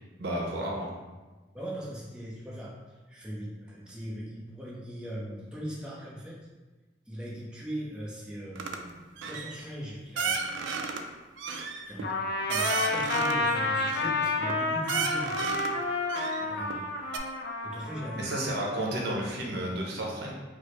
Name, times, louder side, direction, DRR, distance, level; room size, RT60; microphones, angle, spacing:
voice 1, 0.2-0.9 18.2-20.3, right 1 dB, 65° right, -2 dB, 0.7 m, -32 dB
voice 2, 1.5-6.4 7.1-10.9 11.9-12.1 12.5-15.5 16.4-16.9 17.6-18.3, equal, 5° right, -6 dB, 0.6 m, -40 dB
sound 1, 8.6-8.8 9.2-9.6 10.2-11.0 11.4-13.4 13.9-14.5 14.9-15.7 16.1-16.8 17.1-17.2, right 5 dB, 85° right, 0.4 m, -33 dB
Trumpet, 12.0-19.1, left 2 dB, 60° left, 0.5 m, -30 dB
4.5 x 2.0 x 3.0 m, 1.2 s
head